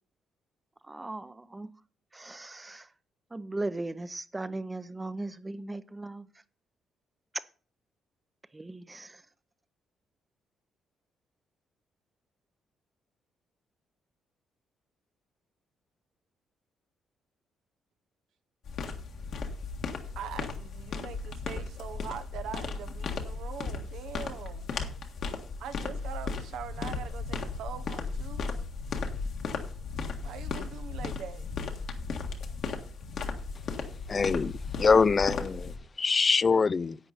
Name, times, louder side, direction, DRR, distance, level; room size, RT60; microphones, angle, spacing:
voice 1, 0.8-1.7 2.1-2.9 3.3-6.3 7.3-7.4 8.5-9.2, right 2 dB, 15° right, 0.7 m, -37 dB
sound 1, 18.6-35.8, left 4 dB, 65° left, 1.7 m, -36 dB
voice 2, 20.1-24.7 25.6-28.5 30.2-31.5 34.3-34.4, right 8 dB, 85° right, 1.0 m, -42 dB
voice 3, 34.1-37.0, left 5 dB, 35° left, 0.3 m, -24 dB
11.0 x 8.4 x 4.1 m
cardioid pair, 90°, 0 cm